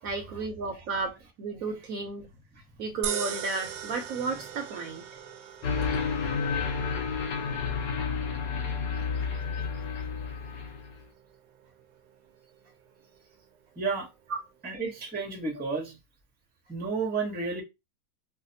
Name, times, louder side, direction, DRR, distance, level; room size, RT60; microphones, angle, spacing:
voice 1, 0.0-2.3 2.8-5.1, right 4 dB, 65° right, 0.9 m, -33 dB
sound 1, 3.0-15.4, right 9 dB, 85° right, 1.3 m, -43 dB
sound 2, 5.6-11.0, left 5 dB, 70° left, 1.3 m, -30 dB
voice 2, 13.8-14.1 14.6-16.0 16.7-17.6, right 4 dB, 10° right, 0.5 m, -31 dB
4.8 x 2.1 x 2.6 m
omnidirectional pair, 1.9 m